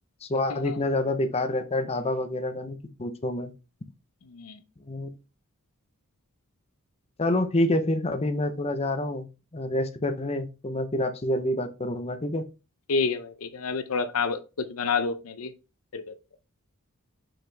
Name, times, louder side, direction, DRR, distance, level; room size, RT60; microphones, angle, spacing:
voice 1, 0.2-3.5 4.9-5.1 7.2-9.3 9.5-12.4, left 1 dB, 30° left, 0.7 m, -27 dB
voice 2, 4.3-4.6 12.9-15.5 15.9-16.1, left 4 dB, 75° left, 0.7 m, -29 dB
5.8 x 5.3 x 3.3 m
head